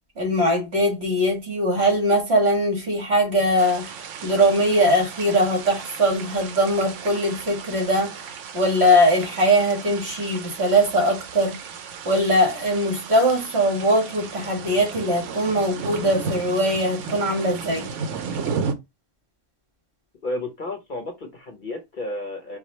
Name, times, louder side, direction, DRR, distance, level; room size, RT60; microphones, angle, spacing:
voice 1, 0.2-3.9 4.2-8.2 8.5-11.6 12.1-17.9, equal, 55° right, 2.0 m, -21 dB
sound 1, 3.6-18.7, right 5 dB, 80° right, 1.0 m, -34 dB
voice 2, 20.2-22.6, left 1 dB, 45° left, 0.9 m, -32 dB
4.7 x 2.3 x 4.1 m
omnidirectional pair, 1.3 m